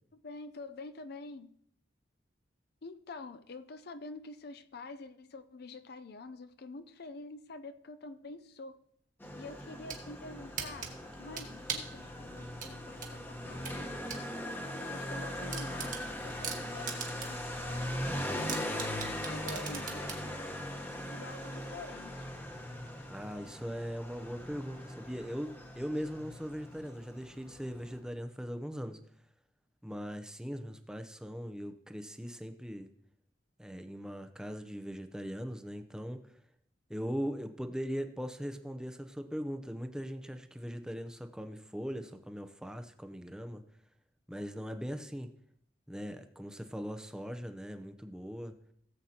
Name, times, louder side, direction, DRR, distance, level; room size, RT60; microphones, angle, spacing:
voice 1, 0.1-1.5 2.8-8.8 9.4-14.0 14.7-18.1 19.2-20.4 20.9-22.3, left 3 dB, 60° left, 10 dB, 0.5 m, -47 dB
Motorcycle, 9.2-28.0, left 1 dB, 10° left, 1.1 m, -40 dB
sound 1, 9.6-10.0 10.6-12.0 12.6-14.2 14.6-14.7 15.1-15.2 15.5-17.5 17.8-17.9 18.5-20.2, right 7 dB, 50° right, 1.5 m, -39 dB
voice 2, 23.1-25.5 25.7-29.0 29.8-32.9 33.6-36.2 36.9-43.6 44.3-45.3 45.9-48.6, equal, 5° right, 7 dB, 0.6 m, -40 dB
17.0 x 7.9 x 2.9 m, 0.67 s
head